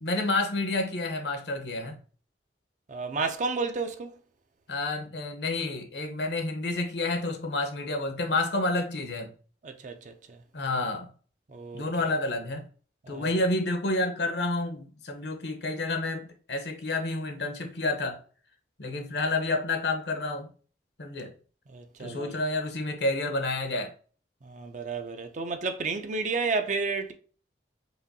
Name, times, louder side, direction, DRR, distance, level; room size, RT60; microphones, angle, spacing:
voice 1, 0.0-2.0 4.7-9.3 10.5-11.1 11.7-12.7 13.1-18.2 18.8-20.5 21.0-21.3 22.0-23.9, left 2 dB, 70° left, 0.9 m, -29 dB
voice 2, 2.9-4.1 9.6-10.4 11.5-12.1 13.1-13.3 21.7-22.4 24.4-27.1, right 4 dB, 45° right, 0.5 m, -32 dB
4.9 x 2.6 x 2.7 m
head